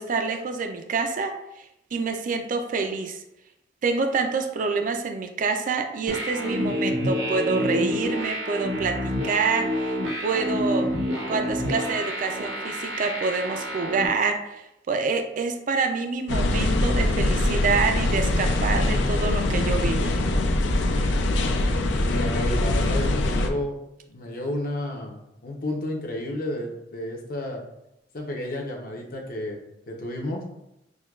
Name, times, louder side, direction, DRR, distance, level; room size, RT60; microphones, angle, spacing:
voice 1, 0.0-1.6 1.9-3.2 3.8-10.0 10.2-10.9 11.3-20.1, right 4 dB, 45° right, 6 dB, 0.4 m, -27 dB
sound 1, 6.1-14.1, equal, 75° right, 0.9 m, -28 dB
sound 2, 16.3-23.5, left 1 dB, 85° left, 0.4 m, -23 dB
voice 2, 22.0-23.8 24.1-27.6 28.1-29.6 29.9-30.4, left 1 dB, 55° left, 0 dB, 0.7 m, -31 dB
6.1 x 2.2 x 2.3 m, 0.85 s
head